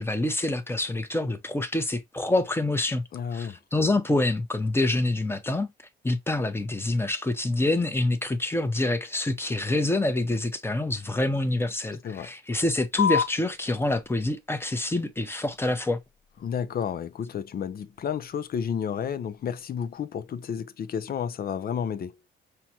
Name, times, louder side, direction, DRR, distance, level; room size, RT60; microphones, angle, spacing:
voice 1, 0.0-3.0 3.3-5.7 6.0-16.0, left 2 dB, 10° left, 0.9 m, -26 dB
voice 2, 3.1-3.6 12.0-12.3 16.4-22.2, left 7 dB, 50° left, 0.6 m, -31 dB
sound 1, 13.0-20.0, left 6 dB, 80° left, 0.9 m, -36 dB
5.7 x 2.4 x 2.8 m
cardioid pair, 90°, 20 cm